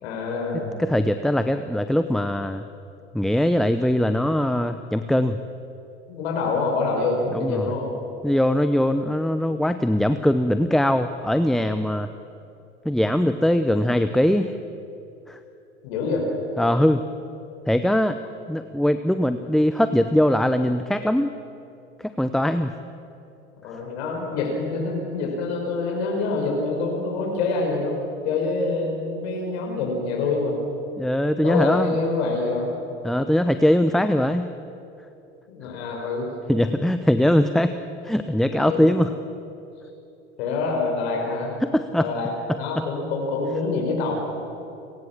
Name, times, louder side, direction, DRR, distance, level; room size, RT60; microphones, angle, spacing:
voice 1, 0.0-0.8 6.1-7.9 15.8-16.2 18.3-18.4 23.6-28.0 28.2-30.6 31.4-32.7 35.5-36.3 38.5-38.9 40.4-41.5 42.0-42.3 42.6-44.1, left 3 dB, 65° left, 0 dB, 5.2 m, -26 dB
voice 2, 0.8-2.6 3.1-5.4 7.3-7.7 8.2-12.1 12.8-14.5 15.3-15.4 16.6-17.0 17.7-18.2 18.5-21.3 22.0-22.7 31.0-31.9 33.0-34.5 36.5-37.8 38.0-39.1 41.6-42.1, left 1 dB, ahead, 10 dB, 0.8 m, -21 dB
29.5 x 18.5 x 7.4 m, 2.8 s
figure-of-eight pair, 75°, 35 cm